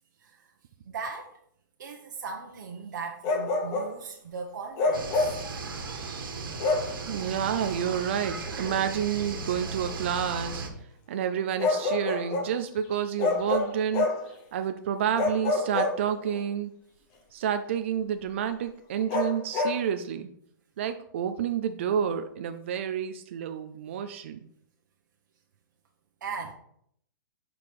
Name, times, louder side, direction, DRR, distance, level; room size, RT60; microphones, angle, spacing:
voice 1, 0.2-0.5 0.9-1.3 1.8-5.4 26.2-26.5, right 5 dB, 60° right, 1.0 m, -38 dB
Bark, 3.2-4.0 4.8-5.5 6.6-7.0 8.6-8.8 11.6-12.6 13.2-14.3 15.1-16.4 19.1-19.8, left 3 dB, 20° left, 0.7 m, -27 dB
sound 1, 4.9-10.7, right 4 dB, 85° right, 1.5 m, -36 dB
voice 2, 7.1-10.6 11.1-14.1 14.5-16.7 17.3-20.3 20.8-24.4, right 8 dB, 35° right, 0.4 m, -29 dB
5.0 x 4.7 x 5.2 m
hypercardioid pair, 175°, 11 cm